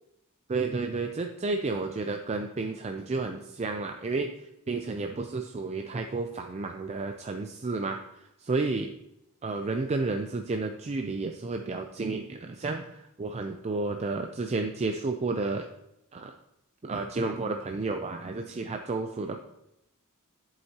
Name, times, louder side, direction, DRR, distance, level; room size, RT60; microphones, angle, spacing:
voice 1, 0.5-8.9 9.4-15.7 16.1-16.3 16.8-19.4, right 3 dB, 30° right, 4 dB, 0.4 m, -31 dB
8.5 x 7.8 x 2.9 m, 0.85 s
head